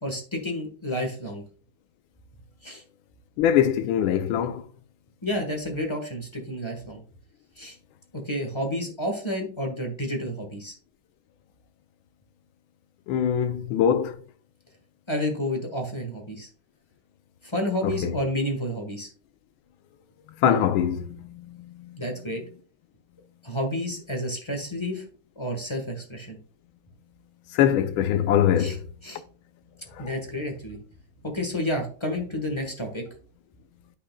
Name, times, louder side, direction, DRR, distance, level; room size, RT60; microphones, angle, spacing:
voice 1, 0.0-1.4 2.6-2.8 5.2-7.0 7.6-7.8 8.1-10.7 15.1-16.5 17.4-19.1 22.0-22.4 23.4-25.0 25.4-26.4 28.6-28.8 29.0-29.2 30.0-30.8 31.2-33.0, left 1 dB, 15° left, 1.2 m, -30 dB
voice 2, 3.4-4.6 13.1-14.2 17.8-18.2 20.4-22.0 27.5-28.8 30.0-30.1, left 9 dB, 80° left, 1.5 m, -23 dB
9.9 x 5.6 x 2.3 m
omnidirectional pair, 2.2 m